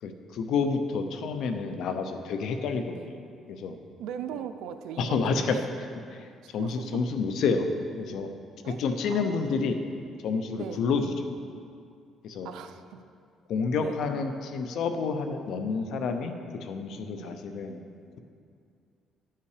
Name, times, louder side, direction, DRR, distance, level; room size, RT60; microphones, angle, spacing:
voice 1, 0.0-3.0 3.5-3.8 5.0-5.6 6.1-6.3 6.5-8.3 8.7-9.8 10.2-11.1 12.2-12.5 13.5-16.4 16.6-17.8, left 5 dB, 70° left, 7 dB, 0.8 m, -29 dB
voice 2, 4.0-5.6 6.6-7.0 8.6-8.8 9.1-9.6 10.5-10.8 12.4-13.0 13.8-14.0 17.2-17.4, right 9 dB, 85° right, 9 dB, 0.5 m, -39 dB
12.0 x 5.7 x 5.0 m, 2.4 s
cardioid pair, 105°, 0 cm